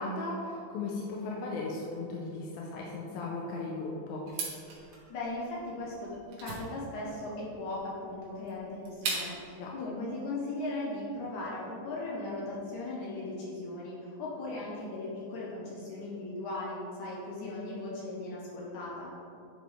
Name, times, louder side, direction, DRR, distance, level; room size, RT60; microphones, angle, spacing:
voice 1, 0.0-4.2 9.6-9.7, left 3 dB, 85° left, -3 dB, 2.5 m, -36 dB
sound 1, 4.3-9.6, right 4 dB, 75° right, 3.1 m, -39 dB
voice 2, 5.1-6.1 6.4-19.1, left 2 dB, 70° left, -5 dB, 2.1 m, -38 dB
10.0 x 5.1 x 3.3 m, 2.8 s
omnidirectional pair, 4.3 m